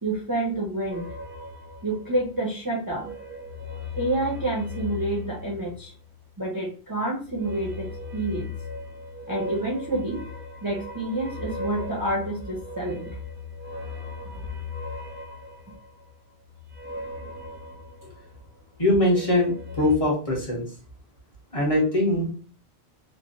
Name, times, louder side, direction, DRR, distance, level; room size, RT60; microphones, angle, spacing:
voice 1, 0.0-1.1 1.8-3.1 4.0-5.9 6.4-8.5 9.3-10.2 10.6-13.1, right 2 dB, 25° right, -3 dB, 0.6 m, -28 dB
sound 1, 0.9-2.5 2.8-6.4 7.2-18.6 18.9-19.9, left 3 dB, 60° right, 0.7 m, -38 dB
voice 2, 18.8-20.7 21.5-22.3, left 1 dB, 35° left, -3 dB, 0.9 m, -22 dB
3.1 x 2.2 x 2.5 m, 0.39 s
omnidirectional pair, 1.1 m